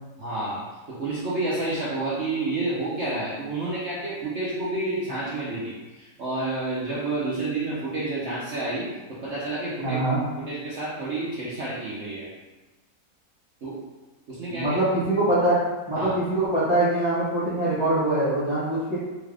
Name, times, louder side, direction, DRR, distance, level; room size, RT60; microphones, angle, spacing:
voice 1, 0.2-10.0 10.4-12.3 13.6-13.8 14.3-14.8 15.9-16.2, right 2 dB, 55° right, -8 dB, 0.8 m, -30 dB
voice 2, 9.8-10.2 14.5-15.6 15.9-19.0, right 1 dB, 25° left, -10 dB, 0.7 m, -23 dB
4.2 x 2.5 x 3.3 m, 1.2 s
omnidirectional pair, 1.9 m